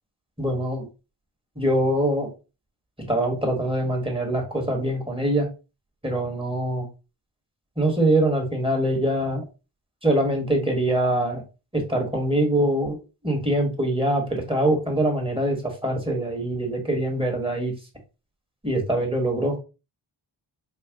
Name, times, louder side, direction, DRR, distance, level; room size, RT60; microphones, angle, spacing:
voice 1, 0.4-0.8 1.6-2.3 3.1-5.5 6.0-6.9 7.8-9.4 10.0-11.4 11.7-13.0 13.2-15.6 15.8-17.7 18.6-19.6, right 1 dB, 10° right, 1 dB, 1.2 m, -23 dB
4.8 x 2.3 x 3.4 m, 0.30 s
wide cardioid pair, 85°, 47 cm